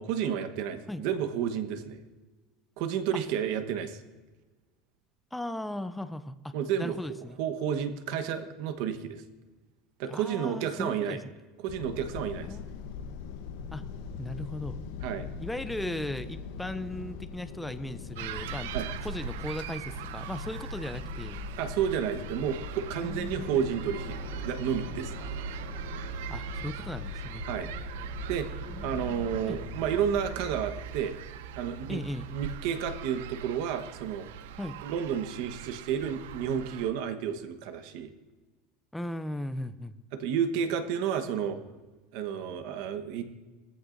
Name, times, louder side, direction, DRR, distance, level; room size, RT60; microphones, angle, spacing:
voice 1, 0.0-2.0 2.8-4.0 6.5-7.0 7.4-9.2 10.0-11.2 11.6-12.6 15.0-15.3 18.7-18.9 21.6-25.1 27.5-27.7 28.3-28.5 28.8-31.1 31.6-32.0 32.3-34.3 34.8-38.1 40.1-41.6 42.1-43.2, right 8 dB, 55° right, 8 dB, 1.1 m, -31 dB
voice 2, 5.3-7.4 10.1-11.2 12.4-12.6 13.7-13.8 14.2-14.8 15.4-18.7 19.0-21.4 23.0-23.6 25.2-25.5 26.3-27.4 28.7-29.6 31.9-32.3 34.6-34.8 38.9-40.0, left 1 dB, 5° left, 10 dB, 0.5 m, -37 dB
sound 1, 11.7-30.3, left 5 dB, 60° left, 0.9 m, -41 dB
sound 2, 18.2-36.9, right 10 dB, 90° right, 0.6 m, -41 dB
19.5 x 14.5 x 2.6 m, 1.2 s
supercardioid pair, 175°, 0 cm